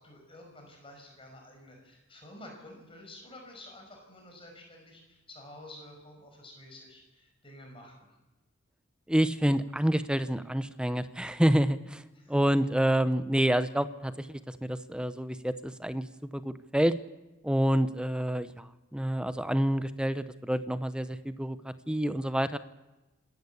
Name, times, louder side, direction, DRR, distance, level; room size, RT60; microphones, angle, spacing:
voice 1, 0.0-8.1 12.1-12.3, left 1 dB, 30° left, 2 dB, 5.8 m, -50 dB
voice 2, 9.1-12.0 12.3-16.1 16.3-16.9 17.4-22.6, right 1 dB, 5° right, 12 dB, 0.7 m, -28 dB
26.0 x 13.5 x 8.4 m, 1.1 s
head